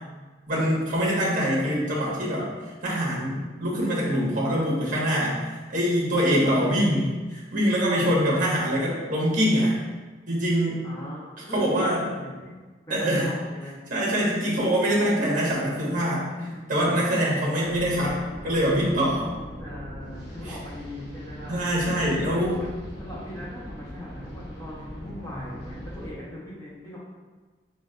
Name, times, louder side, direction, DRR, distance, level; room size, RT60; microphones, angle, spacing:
voice 1, 0.5-9.8 10.3-10.8 11.5-12.0 12.9-13.3 13.9-16.2 16.7-18.1 18.4-19.3 21.5-22.6, equal, 45° right, -5 dB, 1.4 m, -24 dB
voice 2, 10.8-12.5 12.9-13.8 16.4-16.6 17.6-17.7 19.6-21.7 22.3-27.0, equal, 15° left, -7 dB, 0.8 m, -39 dB
sound 1, 17.6-26.1, equal, 65° left, 1.1 m, -40 dB
7.5 x 2.5 x 2.4 m, 1.3 s
head